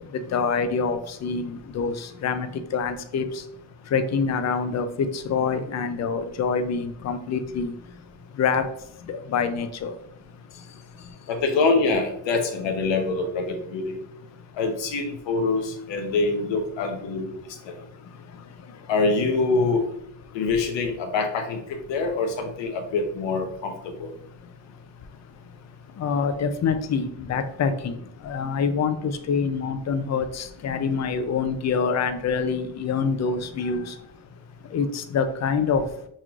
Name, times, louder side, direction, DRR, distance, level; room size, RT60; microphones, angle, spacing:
voice 1, 0.3-3.4 3.9-7.7 8.4-8.6 9.1-9.9 26.0-33.9 34.7-35.8, left 5 dB, 40° left, 9 dB, 0.5 m, -26 dB
voice 2, 11.3-14.0 14.6-17.3 17.6-17.7 18.9-19.8 20.3-23.7 24.0-24.1, left 3 dB, 75° left, 4 dB, 1.0 m, -25 dB
5.6 x 3.1 x 2.4 m, 0.73 s
cardioid pair, 105°, 44 cm